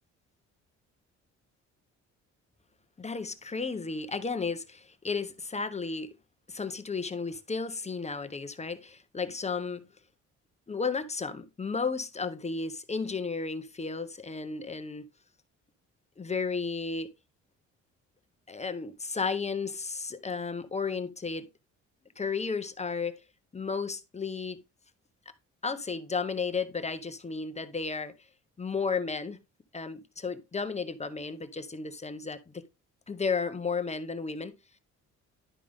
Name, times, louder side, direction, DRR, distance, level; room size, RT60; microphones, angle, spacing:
voice 1, 3.0-6.1 6.5-9.8 10.7-15.1 16.2-17.1 18.5-21.5 22.2-23.2 23.5-24.6 25.6-28.1 28.6-29.4 29.7-32.6 33.1-34.5, left 4 dB, 20° left, 0.9 m, -33 dB
11.0 x 5.0 x 3.6 m
cardioid pair, 90°, 30 cm